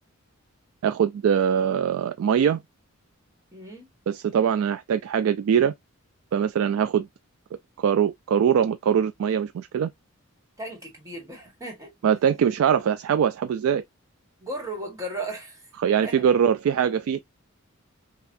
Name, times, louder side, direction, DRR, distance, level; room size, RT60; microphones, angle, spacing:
voice 1, 0.8-2.6 4.1-5.7 6.3-7.1 7.8-9.9 12.0-13.8 15.8-17.2, right 8 dB, 75° right, 0.3 m, -22 dB
voice 2, 3.5-3.9 10.6-11.9 14.4-15.6 16.0-16.2, right 1 dB, 15° right, 1.5 m, -35 dB
5.7 x 2.4 x 2.6 m
head